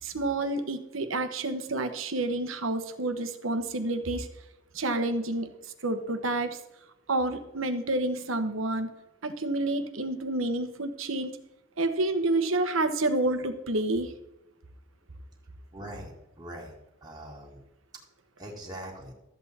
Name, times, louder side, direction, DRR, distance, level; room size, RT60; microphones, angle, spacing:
voice 1, 0.0-4.3 4.7-6.6 7.1-8.9 9.2-11.4 11.8-14.1, right 2 dB, 75° right, 8 dB, 1.2 m, -29 dB
voice 2, 15.7-16.7 17.0-17.6 18.4-19.1, right 1 dB, 20° right, -2 dB, 2.1 m, -42 dB
13.0 x 8.1 x 4.3 m, 0.94 s
head